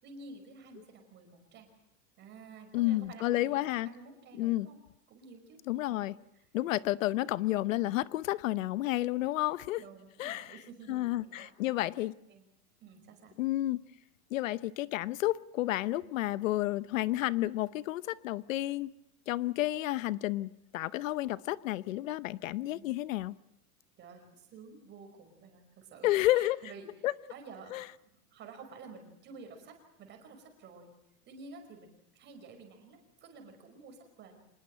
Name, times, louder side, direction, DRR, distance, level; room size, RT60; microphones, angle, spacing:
voice 1, 0.0-1.7 2.2-4.8 5.1-5.6 5.9-6.5 7.0-7.2 9.8-11.8 12.3-12.4 12.8-13.4 22.6-22.9 24.0-26.9 27.3-30.9 31.2-34.4, right 4 dB, 25° right, 5 dB, 5.3 m, -51 dB
voice 2, 2.7-3.9 4.4-4.7 5.7-6.1 6.5-9.8 10.2-10.5 10.9-12.1 13.4-13.8 14.3-18.9 19.3-23.3 26.0-26.6 27.0-27.1 27.7-27.8, left 16 dB, 60° left, 18 dB, 0.9 m, -31 dB
25.5 x 20.5 x 7.7 m, 0.81 s
supercardioid pair, 160°, 46 cm